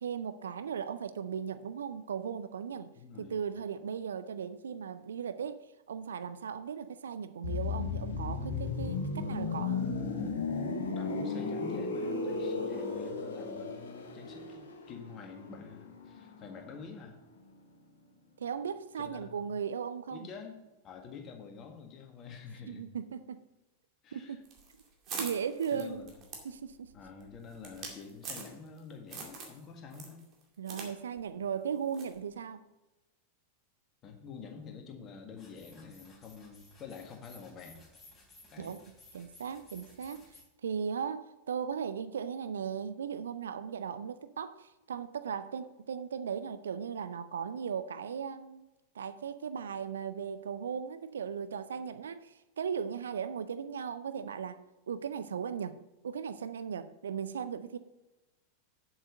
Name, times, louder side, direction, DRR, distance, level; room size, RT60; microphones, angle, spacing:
voice 1, 0.0-2.9 3.2-9.9 18.4-20.3 22.7-23.4 24.1-24.4 25.2-26.1 26.4-26.9 30.6-32.6 38.6-38.8 39.1-40.2 40.6-48.7 48.9-55.8 56.0-57.8, right 7 dB, 65° right, 0.5 m, -37 dB
voice 2, 2.9-3.4 10.9-17.2 19.0-19.4 20.1-20.6 20.8-22.8 24.0-24.4 25.7-26.2 26.9-30.2 34.0-37.8 38.5-38.7, left 5 dB, 30° left, 1.7 m, -47 dB
sound 1, 7.4-17.1 17.4-17.6, left 4 dB, 65° left, 1.7 m, -35 dB
sound 2, 24.5-28.8 29.1-29.6 29.9-30.9 31.2-31.3 31.9-32.2, right 4 dB, 35° right, 2.3 m, -43 dB
sound 3, 35.4-40.4, left 2 dB, 15° left, 3.3 m, -57 dB
8.1 x 7.4 x 5.2 m
figure-of-eight pair, 90°, 0 cm